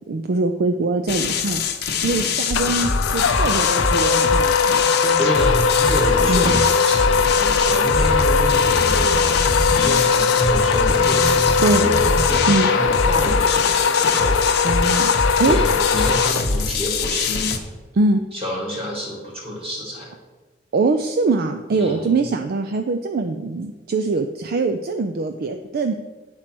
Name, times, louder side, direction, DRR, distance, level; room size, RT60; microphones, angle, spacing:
voice 1, 0.1-1.6 2.0-4.9 6.3-6.5 11.6-11.9 12.5-12.7 14.6-15.6 17.9-18.2 20.7-25.9, right 3 dB, 55° right, 7 dB, 0.4 m, -22 dB
sound 1, 1.1-17.6, left 5 dB, 60° left, 0.8 m, -24 dB
sound 2, 2.5-16.8, left 5 dB, 85° left, 0.4 m, -20 dB
sound 3, 5.0-5.2 6.1-6.6 8.0-9.8 10.8-12.4, equal, 15° left, 0.9 m, -27 dB
voice 2, 5.2-9.2 9.7-14.4 15.4-17.5 18.3-20.1 21.7-22.2, equal, 30° right, -3 dB, 2.3 m, -27 dB
9.1 x 4.4 x 6.0 m, 1.3 s
head